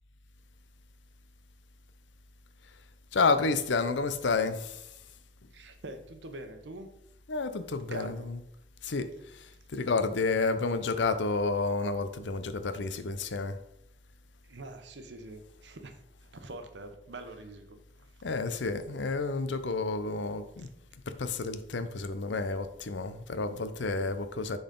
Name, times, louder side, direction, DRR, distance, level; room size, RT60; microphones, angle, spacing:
voice 1, 3.1-4.9 7.3-8.4 8.8-13.6 18.2-20.7 21.1-24.6, left 3 dB, 85° left, 10 dB, 0.6 m, -30 dB
voice 2, 5.5-6.9 7.9-8.3 14.4-17.8 20.6-20.7, right 2 dB, 80° right, 7 dB, 0.9 m, -44 dB
10.5 x 4.0 x 3.8 m, 0.82 s
head